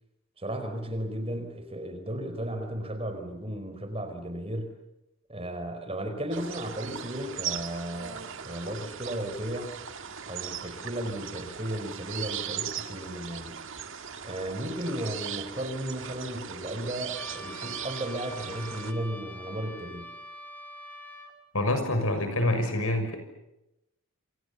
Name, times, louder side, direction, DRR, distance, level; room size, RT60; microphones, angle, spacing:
voice 1, 0.4-4.7 5.3-9.7 10.3-13.6 14.2-20.1, right 1 dB, 25° right, 7 dB, 4.8 m, -35 dB
sound 1, 6.3-18.9, right 8 dB, 60° right, 1.9 m, -39 dB
Trumpet, 17.1-21.3, equal, 5° left, 3.2 m, -44 dB
voice 2, 21.5-23.2, left 1 dB, 70° left, 8 dB, 6.2 m, -26 dB
28.5 x 26.5 x 7.1 m, 0.91 s
head